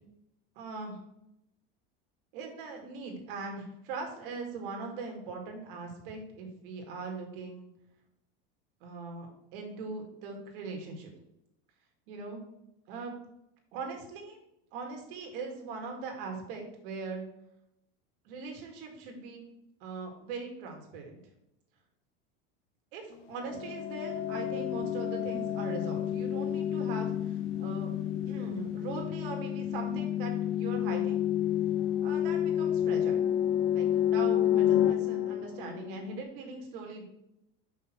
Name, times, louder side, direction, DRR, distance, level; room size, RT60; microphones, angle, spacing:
voice 1, 0.6-1.0 2.3-7.7 8.8-11.1 12.1-12.4 12.9-13.1 13.7-14.4 14.7-17.3 18.2-19.4 19.8-21.2 22.9-27.9 28.3-31.2 32.0-33.3 33.7-37.0, right 4 dB, 65° right, 2 dB, 2.2 m, -40 dB
sound 1, 23.4-36.2, left 11 dB, 40° left, 0.5 m, -29 dB
6.4 x 5.6 x 4.5 m, 0.82 s
supercardioid pair, 160°, 29 cm